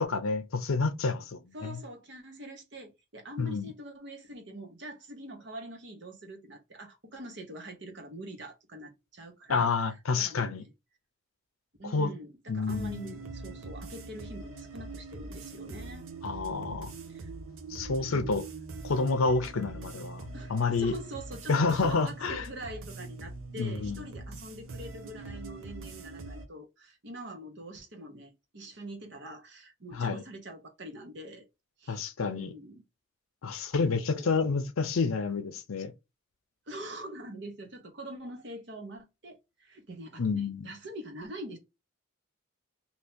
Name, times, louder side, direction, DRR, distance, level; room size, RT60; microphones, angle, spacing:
voice 1, 0.0-1.8 3.4-3.7 9.5-10.6 11.8-12.1 12.5-13.1 16.2-16.9 17.7-18.4 18.8-20.9 21.5-22.5 23.6-24.1 30.0-30.2 31.9-32.5 33.4-35.9 40.2-40.7, left 4 dB, 85° left, 0.6 m, -29 dB
voice 2, 1.5-10.7 11.8-16.1 17.1-17.3 18.1-18.3 19.6-19.9 20.3-31.5 31.8-32.8 33.8-34.5 36.7-41.6, right 1 dB, 55° right, 1.0 m, -44 dB
sound 1, 12.6-26.4, right 3 dB, 85° right, 0.7 m, -43 dB
2.8 x 2.8 x 3.5 m
head